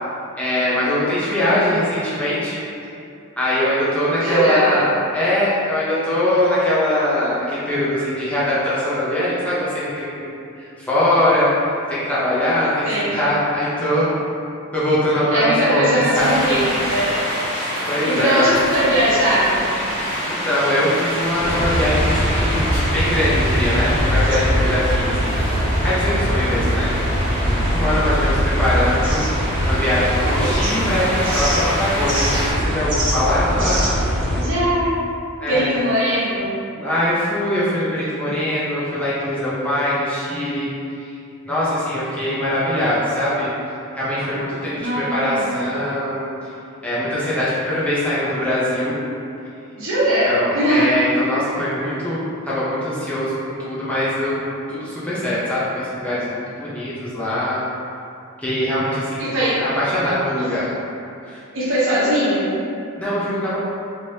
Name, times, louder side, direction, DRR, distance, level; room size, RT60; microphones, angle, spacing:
voice 1, 0.4-2.6 3.4-14.1 14.7-16.5 17.9-18.6 19.9-25.4 25.8-29.2 29.6-33.8 35.4-35.8 36.8-40.7 40.9-41.2 41.4-43.5 43.9-46.5 46.8-49.0 50.3-54.4 54.7-57.6 58.4-59.3 59.6-60.7 61.2-61.4 63.0-63.6, left 1 dB, 5° left, -10 dB, 0.5 m, -22 dB
voice 2, 4.2-4.7 12.8-13.1 15.3-17.2 18.0-19.6 30.2-30.5 34.3-35.0 35.5-36.5 44.8-45.5 49.8-50.9 59.2-59.5 60.4-60.5 61.5-62.5, right 1 dB, 65° right, -9 dB, 1.0 m, -20 dB
sound 1, 16.1-32.5, equal, 20° left, 1.4 m, -26 dB
sound 2, 21.4-34.4, equal, 35° right, 1.4 m, -21 dB
3.1 x 3.0 x 2.7 m, 2.6 s
head